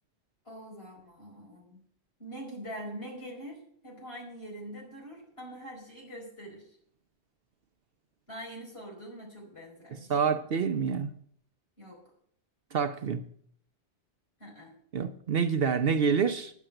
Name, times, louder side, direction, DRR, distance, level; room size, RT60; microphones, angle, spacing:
voice 1, 0.4-1.8 2.2-6.8 8.3-10.3 11.8-12.0 14.4-14.7, equal, 55° left, 5.1 m, -44 dB
voice 2, 10.1-11.1 12.7-13.2 14.9-16.5, right 6 dB, 60° right, 0.9 m, -27 dB
10.0 x 7.3 x 7.7 m
omnidirectional pair, 1.2 m